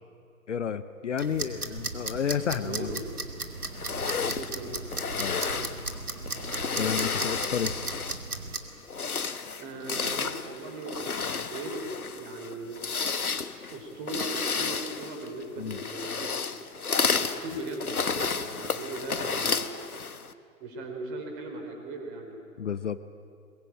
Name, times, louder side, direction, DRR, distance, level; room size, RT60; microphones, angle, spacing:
voice 1, 0.5-3.0 5.2-5.4 6.8-7.7 15.6-15.8 22.6-23.0, left 7 dB, 55° left, 13 dB, 0.9 m, -31 dB
sound 1, 1.2-8.6, right 3 dB, 80° right, 2.2 m, -36 dB
voice 2, 2.5-3.1 4.3-4.8 5.4-5.8 9.6-12.9 13.7-16.4 17.2-20.1 20.6-22.4, right 2 dB, 25° right, 3 dB, 4.2 m, -39 dB
sound 2, 3.7-8.3 8.8-20.3, left 5 dB, 80° left, 1.2 m, -32 dB
22.5 x 22.0 x 8.9 m, 2.3 s
figure-of-eight pair, 125°, 44 cm